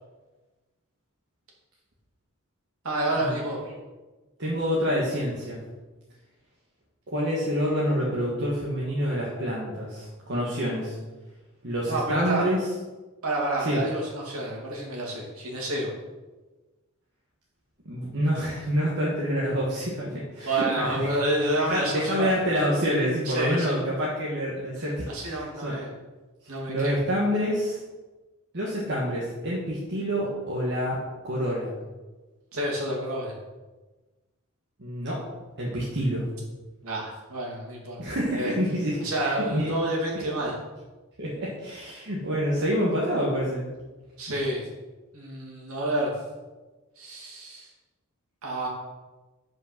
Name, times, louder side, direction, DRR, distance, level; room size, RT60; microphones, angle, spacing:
voice 1, 2.8-3.6 11.9-12.4 13.2-15.9 20.4-22.4 23.2-23.8 24.8-25.9 26.5-27.0 32.5-33.4 36.8-38.5 39.0-40.5 44.2-44.6 45.1-46.1 47.0-47.7 48.4-48.7, right 1 dB, 70° right, -3 dB, 2.7 m, -29 dB
voice 2, 4.4-5.6 7.1-11.0 11.6-12.7 13.6-13.8 17.8-21.2 21.6-25.8 26.7-27.8 28.5-31.7 34.8-35.2 35.6-36.2 38.0-39.7 40.1-40.3 41.2-43.7, equal, 50° right, -5 dB, 1.6 m, -27 dB
8.2 x 5.4 x 6.0 m, 1.2 s
head